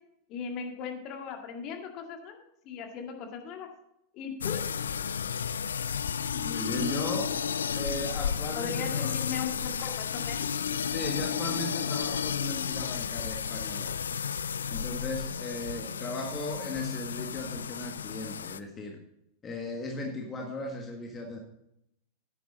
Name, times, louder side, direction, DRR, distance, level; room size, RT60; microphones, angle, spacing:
voice 1, 0.3-3.7 4.1-4.6 8.5-10.5, left 7 dB, 40° left, 3 dB, 2.1 m, -38 dB
sound 1, 4.4-18.6, left 7 dB, 70° left, 0.4 m, -32 dB
voice 2, 6.3-7.3 7.7-9.1 10.9-13.9 14.7-19.0 19.4-21.4, left 1 dB, 20° left, 1 dB, 1.7 m, -37 dB
10.5 x 9.1 x 3.9 m, 0.79 s
figure-of-eight pair, 90°, 0 cm